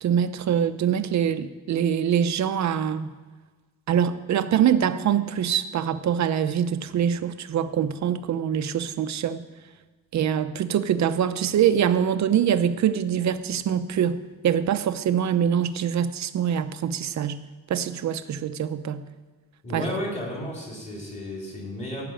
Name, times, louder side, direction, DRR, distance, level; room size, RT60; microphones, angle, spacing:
voice 1, 0.0-3.1 3.9-9.4 10.1-14.2 14.4-17.4 17.7-19.0 19.7-19.8, right 9 dB, 55° right, 10 dB, 0.7 m, -24 dB
voice 2, 19.6-22.0, left 1 dB, 20° left, -2 dB, 3.5 m, -33 dB
16.5 x 6.0 x 8.9 m, 1.3 s
cardioid pair, 180°, 34 cm